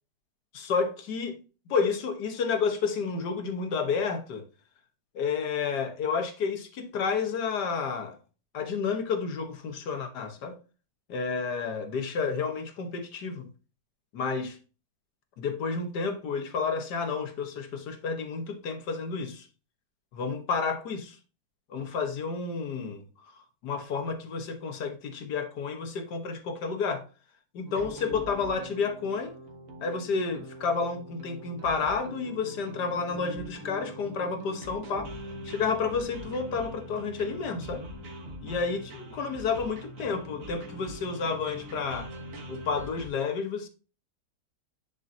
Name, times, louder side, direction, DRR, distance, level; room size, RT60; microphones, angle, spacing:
voice 1, 0.5-1.4 1.7-4.4 5.2-8.2 8.5-10.6 11.1-13.5 14.1-14.6 15.4-19.5 20.1-21.2 21.7-23.1 23.6-27.0 27.5-29.3 29.8-35.1 35.5-37.8 38.4-42.1 42.5-43.7, left 5 dB, 75° left, 1.7 m, -30 dB
sound 1, 27.7-43.1, equal, 50° right, 1.7 m, -43 dB
10.0 x 5.2 x 2.7 m
omnidirectional pair, 1.8 m